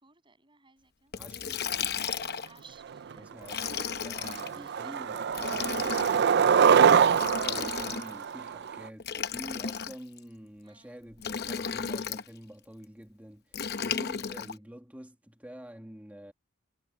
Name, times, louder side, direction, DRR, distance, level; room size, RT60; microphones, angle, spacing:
voice 1, 0.0-1.1 2.4-3.6 4.6-5.3 10.6-11.0 14.3-14.6, right 4 dB, 25° right, 7.2 m, -58 dB
Liquid, 1.1-2.6 3.4-4.5 5.3-6.2 7.1-8.2 9.0-10.2 11.2-12.3 13.5-14.5, left 7 dB, 50° left, 0.9 m, -34 dB
voice 2, 1.2-1.6 3.2-6.7 7.1-16.3, equal, 5° right, 2.0 m, -47 dB
Skateboard, 3.1-3.2 3.6-3.9 4.2-8.9, right 7 dB, 55° right, 0.4 m, -24 dB
head